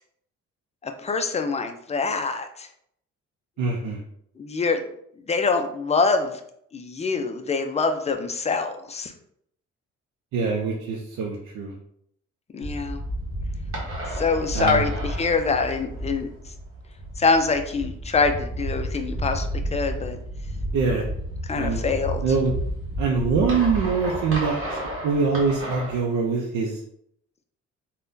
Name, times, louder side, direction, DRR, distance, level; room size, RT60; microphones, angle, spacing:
voice 1, 0.8-2.7 4.4-4.8 5.3-6.4 6.7-9.1 12.5-13.0 14.1-16.3 17.2-20.2 21.5-22.2, left 4 dB, 20° left, 6 dB, 0.4 m, -25 dB
voice 2, 3.6-4.0 10.3-11.7 14.5-14.9 20.7-21.0 21.5-21.8 22.2-22.5 23.0-26.8, right 4 dB, 80° right, 0 dB, 0.5 m, -24 dB
sound 1, 12.6-26.0, equal, 45° right, 1.2 m, -31 dB
3.5 x 2.2 x 2.6 m, 0.69 s
cardioid pair, 90°, 30 cm